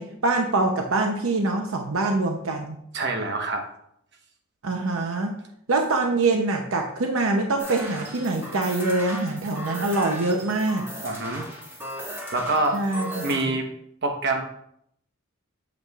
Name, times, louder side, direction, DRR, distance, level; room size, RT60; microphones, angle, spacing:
voice 1, 0.0-2.8 4.6-5.3 5.7-10.9 12.7-13.6, right 2 dB, 85° right, 3 dB, 0.7 m, -24 dB
voice 2, 2.9-3.7 11.0-11.5 12.3-12.8 13.2-13.7 14.0-14.4, right 2 dB, 55° right, 3 dB, 1.1 m, -25 dB
sound 1, 7.6-13.4, equal, 10° right, 1.5 m, -37 dB
8.1 x 7.2 x 2.4 m, 0.73 s
head